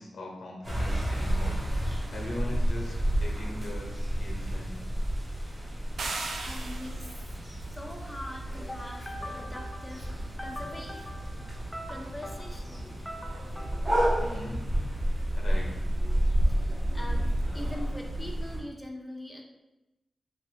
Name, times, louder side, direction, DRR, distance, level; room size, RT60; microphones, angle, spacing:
voice 1, 0.0-4.8 14.2-14.6 15.4-15.7, left 1 dB, 90° left, -2 dB, 0.8 m, -41 dB
sound 1, 0.6-18.6, right 1 dB, 30° right, 1.0 m, -31 dB
sound 2, 6.0-7.3, right 3 dB, 90° right, 0.4 m, -36 dB
voice 2, 6.4-7.3 7.8-14.3 16.5-19.4, left 1 dB, 10° left, 0 dB, 0.5 m, -42 dB
2.9 x 2.4 x 3.2 m, 0.98 s
wide cardioid pair, 85°, 0 cm